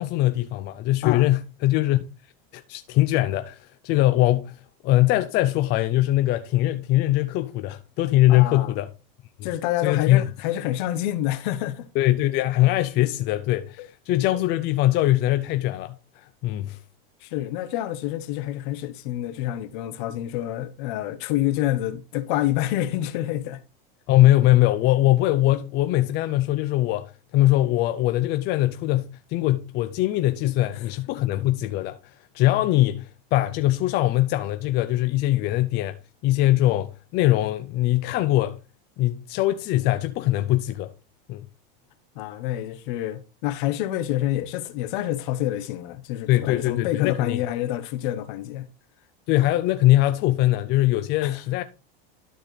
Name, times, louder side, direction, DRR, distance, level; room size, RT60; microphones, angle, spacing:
voice 1, 0.0-2.1 2.5-8.9 9.8-10.2 12.0-16.8 24.1-32.0 32.3-36.0 36.2-38.6 39.0-40.9 41.3-41.5 46.3-47.4 49.3-51.6, left 15 dB, 35° left, 0.5 m, -22 dB
voice 2, 8.3-8.7 9.4-11.9 13.8-13.9 17.2-23.6 30.7-30.9 42.1-48.7 51.2-51.4, left 13 dB, 60° left, 1.1 m, -27 dB
12.5 x 4.4 x 3.2 m
supercardioid pair, 140°, 29 cm